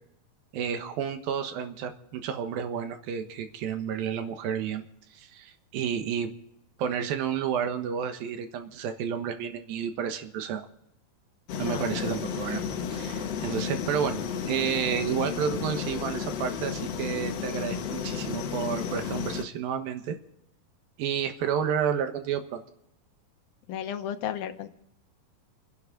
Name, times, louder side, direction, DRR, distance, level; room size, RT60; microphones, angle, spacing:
voice 1, 0.5-4.8 5.1-6.3 6.8-10.7 11.6-12.6 12.9-14.2 14.5-20.2 21.0-22.6, right 8 dB, 85° right, 7 dB, 3.1 m, -31 dB
voice 2, 11.5-12.2 23.7-24.7, left 10 dB, 85° left, 7 dB, 2.9 m, -34 dB
sound 1, 11.5-19.4, left 7 dB, 60° left, 1.7 m, -33 dB
30.0 x 10.5 x 3.8 m, 0.81 s
omnidirectional pair, 4.1 m